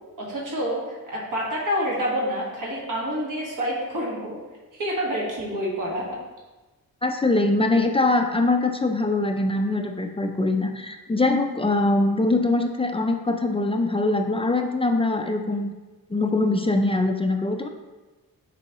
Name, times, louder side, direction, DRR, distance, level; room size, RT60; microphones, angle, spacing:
voice 1, 0.2-4.4 4.7-6.1, equal, 60° right, -4 dB, 1.7 m, -28 dB
voice 2, 7.0-15.7 16.1-17.7, left 2 dB, 15° left, 4 dB, 0.3 m, -23 dB
6.8 x 5.3 x 3.0 m, 1.2 s
wide cardioid pair, 160°, 36 cm